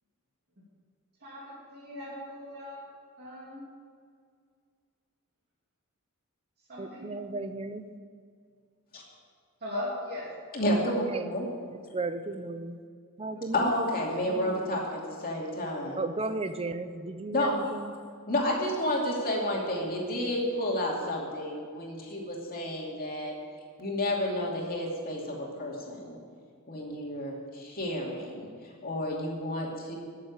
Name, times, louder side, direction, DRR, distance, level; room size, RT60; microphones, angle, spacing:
voice 1, 1.2-2.8 3.2-3.6 6.7-7.1 9.6-10.3 10.6-10.8 13.3-13.5, left 1 dB, 45° right, -8 dB, 2.9 m, -39 dB
voice 2, 6.8-7.8 11.9-12.7 13.2-13.5 16.0-17.5, right 3 dB, 25° right, 10 dB, 0.7 m, -34 dB
voice 3, 10.5-11.0 11.3-11.5 11.8-11.9 13.5-16.0 17.3-17.6 18.3-23.3 23.8-26.2 26.7-28.5 28.8-30.0, left 1 dB, 40° left, -2 dB, 2.6 m, -31 dB
13.0 x 7.4 x 8.5 m, 2.1 s
head